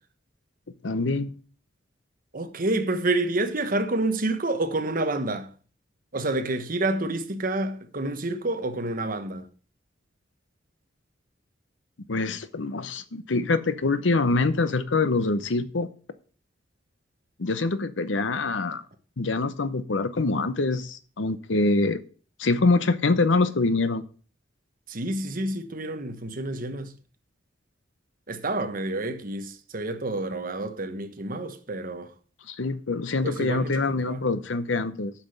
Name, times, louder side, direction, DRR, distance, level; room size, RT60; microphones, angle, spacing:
voice 1, 0.8-1.3 12.1-15.9 17.4-18.8 19.2-22.0 22.4-24.1 32.5-35.1, left 3 dB, 80° left, 0.8 m, -25 dB
voice 2, 2.3-5.5 6.1-9.4 24.9-26.9 28.3-32.1 33.2-33.7 34.0-34.2, right 2 dB, 50° right, 1.2 m, -28 dB
8.6 x 5.9 x 6.6 m
head